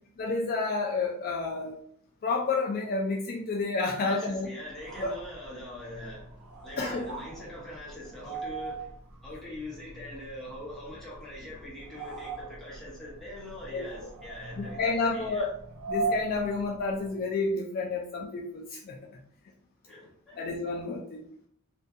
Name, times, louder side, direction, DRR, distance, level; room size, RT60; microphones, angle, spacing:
voice 1, 0.2-1.8 2.2-4.5 5.0-5.1 6.8-7.1 13.7-13.9 14.6-15.5 15.9-19.0 20.4-21.3, left 3 dB, 40° left, -1 dB, 0.3 m, -30 dB
voice 2, 4.0-6.4 6.6-8.9 9.2-15.5 19.9-20.4, left 1 dB, ahead, -7 dB, 1.0 m, -43 dB
sound 1, 4.7-17.2, right 3 dB, 75° right, 0.6 m, -40 dB
2.5 x 2.2 x 2.6 m, 0.66 s
head